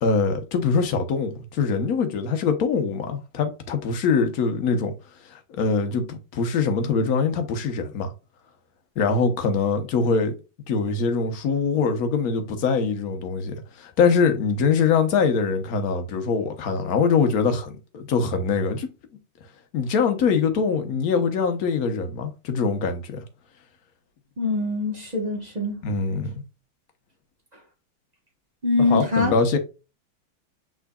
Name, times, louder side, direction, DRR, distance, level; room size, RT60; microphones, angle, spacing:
voice 1, 0.0-4.9 5.3-8.1 9.0-10.3 10.7-18.9 19.7-23.2 25.8-26.4 28.8-29.6, left 5 dB, 55° left, 1.1 m, -23 dB
voice 2, 24.4-25.8 28.6-29.3, left 3 dB, 25° right, 1.0 m, -23 dB
6.0 x 3.9 x 2.2 m
omnidirectional pair, 2.4 m